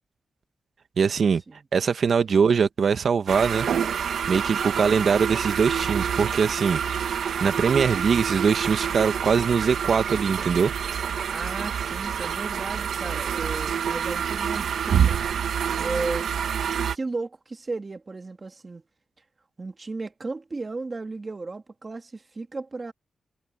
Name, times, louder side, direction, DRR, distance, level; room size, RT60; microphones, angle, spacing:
voice 1, 1.0-1.4 1.7-3.7 4.3-6.8 7.4-10.7, right 6 dB, 65° right, 1.1 m, -22 dB
sound 1, 3.3-17.0, right 8 dB, 90° right, 1.1 m, -27 dB
voice 2, 11.3-15.3 15.8-16.3 16.8-18.8 19.6-22.9, right 3 dB, 35° right, 1.9 m, -34 dB
cardioid pair, 90°, 0 cm